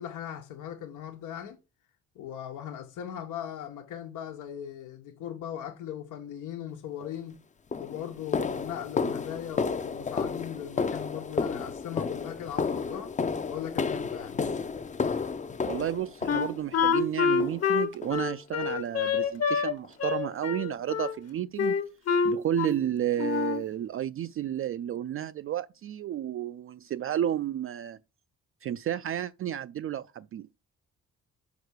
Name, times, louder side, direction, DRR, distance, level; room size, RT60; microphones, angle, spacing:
voice 1, 0.0-1.6 2.1-7.4 7.8-13.1 13.5-14.4, left 10 dB, 85° left, 1.3 m, -39 dB
sound 1, 7.0-7.2 7.7-16.9 17.4-17.8 18.0-18.2 18.6-18.8 19.2-19.3 19.8-19.9, left 5 dB, 25° left, 0.6 m, -32 dB
voice 2, 15.7-21.8 22.2-28.0 28.6-30.5, right 11 dB, 45° right, 0.4 m, -32 dB
Wind instrument woodwind instrument, 16.3-19.7 20.0-21.1 21.6-22.9 23.2-23.7, left 6 dB, 55° left, 1.4 m, -27 dB
5.7 x 4.8 x 6.4 m
cardioid pair, 90°, 30 cm